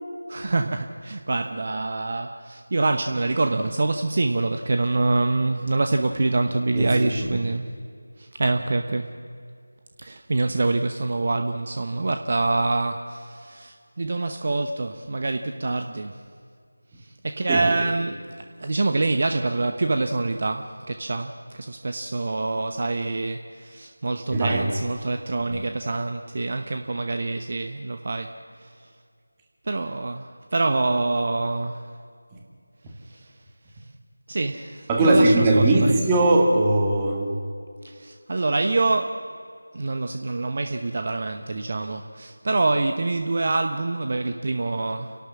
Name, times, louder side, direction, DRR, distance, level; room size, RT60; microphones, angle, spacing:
voice 1, 0.3-7.7 8.2-9.1 10.0-16.1 17.0-18.2 18.6-28.4 29.7-31.8 33.1-33.3 34.3-36.0 37.8-39.3 39.7-45.2, right 2 dB, 40° right, 7 dB, 0.9 m, -25 dB
voice 2, 6.7-7.4 17.5-17.7 24.3-24.7 25.5-25.6 34.9-37.4, right 2 dB, 15° right, -1 dB, 2.1 m, -20 dB
29.5 x 12.0 x 7.4 m, 2.2 s
figure-of-eight pair, 165°, 0 cm